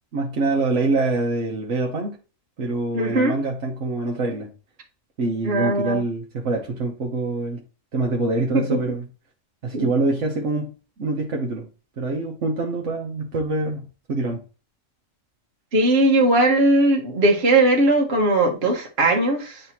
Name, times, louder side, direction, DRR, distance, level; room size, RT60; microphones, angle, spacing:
voice 1, 0.1-2.2 2.6-4.5 5.2-7.6 7.9-9.1 9.6-11.7 12.0-14.4, right 2 dB, 70° right, 1.3 m, -25 dB
voice 2, 2.9-3.3 5.4-6.0 8.7-8.8 9.7-9.9 15.7-19.6, right 2 dB, 55° right, 1.5 m, -19 dB
9.8 x 3.4 x 2.9 m
omnidirectional pair, 1.3 m